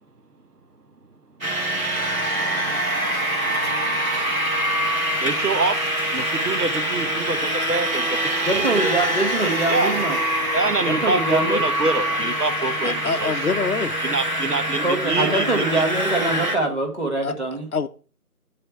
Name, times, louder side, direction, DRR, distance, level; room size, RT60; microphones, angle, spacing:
sound 1, 1.4-16.6, equal, 60° right, 1.6 m, -24 dB
voice 1, 5.2-5.8 6.1-8.9 9.7-9.9 10.5-13.3 14.0-15.8, right 3 dB, 80° right, 9 dB, 0.9 m, -25 dB
voice 2, 8.4-10.2 10.9-11.6 14.8-17.7, right 2 dB, 45° right, 0 dB, 1.9 m, -23 dB
voice 3, 12.8-13.9 17.2-17.3 17.7-17.9, left 4 dB, 65° left, 11 dB, 0.6 m, -25 dB
6.7 x 3.3 x 5.5 m, 0.40 s
figure-of-eight pair, 175°, 46 cm